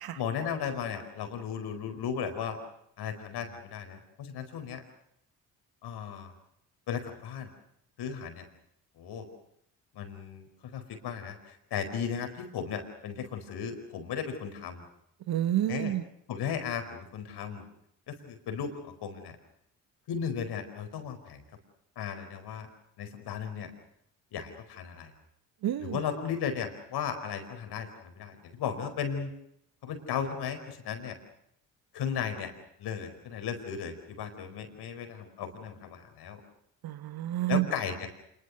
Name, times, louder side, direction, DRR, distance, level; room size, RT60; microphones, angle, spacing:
voice 1, 0.1-2.6 3.0-4.8 5.8-6.3 6.9-7.5 8.0-8.5 9.0-9.3 9.9-14.9 15.7-15.9 16.3-17.6 18.1-19.4 20.1-21.4 22.0-22.7 23.0-23.7 24.3-25.1 25.8-29.3 29.8-31.2 31.9-32.5 32.8-36.4 37.5-38.1, left 7 dB, 75° left, 7 dB, 4.8 m, -35 dB
voice 2, 15.3-16.0 25.6-26.0 36.8-37.7, right 13 dB, 65° right, 14 dB, 1.2 m, -29 dB
26.5 x 22.5 x 6.5 m, 0.75 s
supercardioid pair, 60°, 39 cm